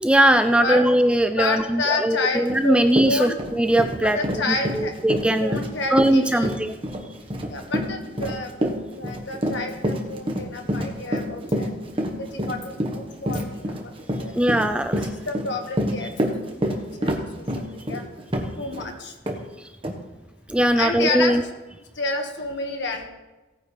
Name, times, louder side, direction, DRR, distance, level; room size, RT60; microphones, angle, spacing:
voice 1, 0.0-4.2 4.5-5.6 5.9-6.7 14.3-15.1 19.6-19.7 20.5-21.4, right 1 dB, 5° right, 8 dB, 0.3 m, -20 dB
voice 2, 1.4-3.4 4.0-4.9 5.4-6.5 7.5-11.7 12.2-13.9 14.2-14.6 15.3-16.3 16.7-18.0 18.6-19.1 20.8-21.4 21.9-23.1, left 3 dB, 55° left, 4 dB, 1.6 m, -29 dB
Run, 2.5-2.6 2.9-18.9 19.3-19.4 19.8-20.0, equal, 25° right, 1.3 m, -27 dB
17.5 x 9.4 x 3.3 m, 1.1 s
head